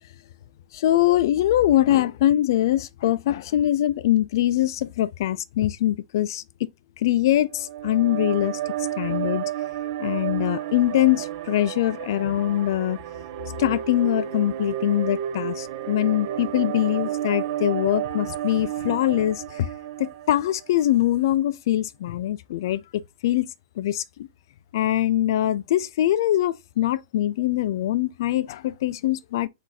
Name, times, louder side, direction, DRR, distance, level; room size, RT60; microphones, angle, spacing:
voice 1, 0.7-6.7 7.0-8.6 9.0-9.4 10.0-13.0 13.6-19.7 20.0-24.3 24.7-29.5, left 13 dB, 60° left, 0.4 m, -23 dB
sound 1, 7.4-20.8, right 11 dB, 55° right, 0.6 m, -31 dB
4.0 x 2.6 x 4.2 m
hypercardioid pair, 115°, 2 cm